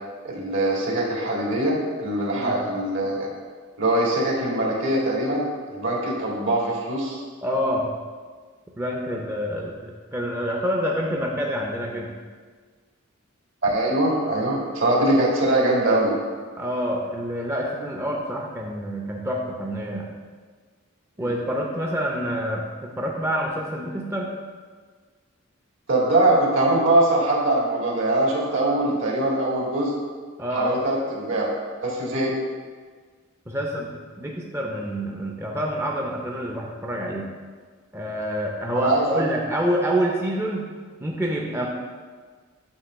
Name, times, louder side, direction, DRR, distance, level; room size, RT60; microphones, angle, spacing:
voice 1, 0.2-3.3 3.8-7.2 13.6-16.1 21.2-21.4 25.9-29.9 30.5-31.5 31.8-32.3 38.7-39.2, right 1 dB, 70° right, -3 dB, 1.9 m, -22 dB
voice 2, 7.4-7.9 8.8-12.1 16.6-20.1 21.2-24.3 30.4-30.7 33.5-37.3 37.9-40.7 41.0-41.7, equal, 15° right, -1 dB, 0.6 m, -27 dB
8.3 x 3.1 x 6.1 m, 1.5 s
head